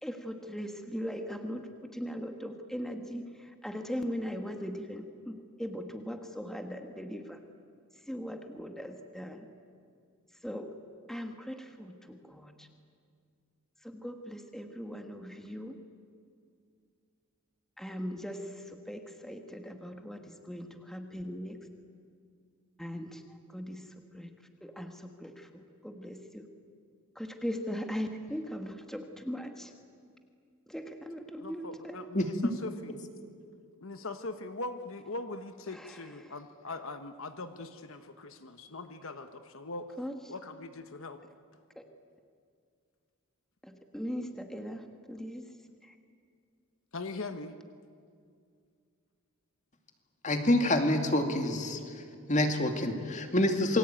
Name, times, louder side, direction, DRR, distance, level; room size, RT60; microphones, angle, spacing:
voice 1, 0.0-7.4 8.0-9.5 10.4-10.7 11.1-12.7 13.8-15.8 17.8-21.6 22.8-24.3 24.6-26.5 27.1-29.7 30.7-32.1 35.7-36.3 40.0-40.3 41.7-41.9 43.6-46.0, equal, ahead, 5 dB, 1.5 m, -40 dB
voice 2, 31.4-33.0 33.8-39.9 40.3-41.2 46.9-47.6, left 2 dB, 65° left, 8 dB, 1.2 m, -41 dB
voice 3, 50.2-52.0 52.3-53.8, left 1 dB, 35° left, 5 dB, 2.4 m, -27 dB
28.0 x 23.0 x 9.0 m, 2.3 s
head